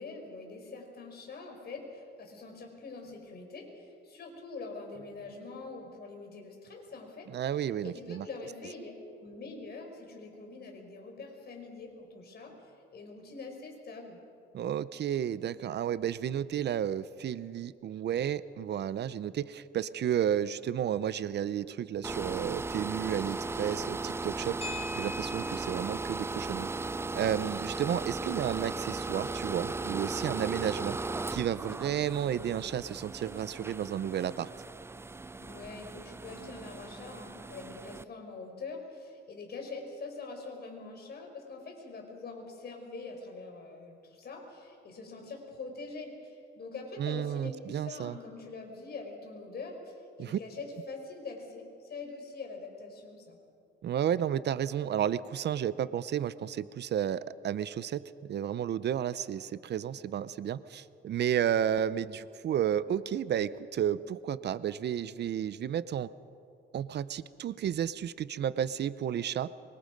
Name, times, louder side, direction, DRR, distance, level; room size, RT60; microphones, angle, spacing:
voice 1, 0.0-7.3 7.8-14.2 35.4-53.4, left 3 dB, 55° left, 2 dB, 5.2 m, -44 dB
voice 2, 7.3-8.3 14.5-24.6 25.0-26.7 27.1-31.0 31.3-34.5 47.0-48.2 50.2-50.4 53.8-66.1 66.7-69.5, right 9 dB, 60° right, 16 dB, 0.7 m, -32 dB
sound 1, 22.0-38.0, right 3 dB, 10° right, 0.4 m, -37 dB
sound 2, 24.6-33.0, left 2 dB, 30° left, 4.7 m, -48 dB
24.5 x 24.0 x 5.3 m, 2.4 s
cardioid pair, 90°, 20 cm